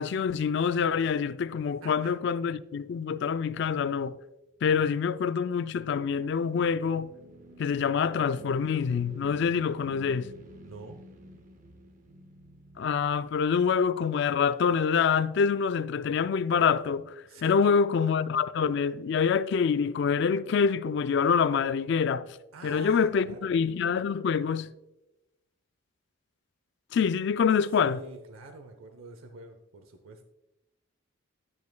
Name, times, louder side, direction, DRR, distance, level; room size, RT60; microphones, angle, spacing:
voice 1, 0.0-4.2 4.6-7.1 7.6-10.3 12.8-17.1 17.4-22.4 22.6-24.7 26.9-28.0, left 6 dB, 55° left, 0.3 m, -26 dB
voice 2, 1.8-2.1 10.6-11.0 17.2-17.5 22.5-23.5 27.8-30.2, right 3 dB, 80° right, 0.7 m, -47 dB
sound 1, 5.5-14.1, right 1 dB, 35° right, 0.6 m, -51 dB
10.5 x 8.2 x 2.2 m
head